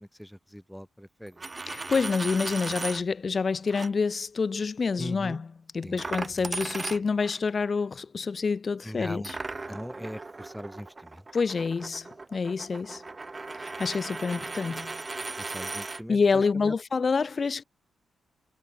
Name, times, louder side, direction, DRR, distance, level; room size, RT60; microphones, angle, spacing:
voice 1, 0.0-1.5 5.0-5.4 5.8-6.0 6.4-6.5 8.8-9.4 9.7-11.3 15.2-16.7, equal, ahead, 5.3 m, -40 dB
Coin (dropping), 1.3-3.0 3.7-3.9 6.0-7.4 9.2-16.0, right 3 dB, 35° right, 2.3 m, -37 dB
voice 2, 1.7-5.5 5.7-9.4 11.3-13.0 13.5-15.0 16.1-17.6, left 5 dB, 50° left, 2.9 m, -27 dB
supercardioid pair, 50°, 0 cm